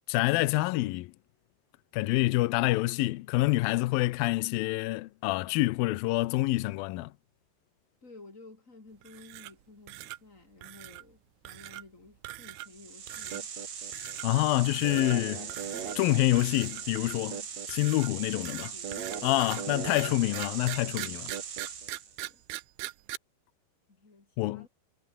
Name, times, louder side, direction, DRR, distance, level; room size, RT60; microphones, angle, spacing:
voice 1, 0.1-1.1 1.9-7.1 14.2-15.5 16.0-17.4 17.7-18.7 19.2-21.3 24.4-24.7, left 19 dB, 80° left, 2.3 m, -27 dB
voice 2, 8.0-13.5 18.3-19.3 22.2-22.4 23.9-24.7, left 3 dB, 20° left, 3.1 m, -53 dB
sound 1, 9.0-9.6 9.9-10.2 10.6-11.0 11.5-11.8 12.2-12.8 13.1-13.4 13.9-14.3 14.7-15.2 15.5-16.0 16.4-17.3 17.7-23.2, right 18 dB, 90° right, 2.8 m, -42 dB
sound 2, 12.6-22.2, right 7 dB, 45° right, 3.4 m, -39 dB
sound 3, 14.6-17.6, right 5 dB, 60° right, 7.4 m, -59 dB
omnidirectional pair, 4.6 m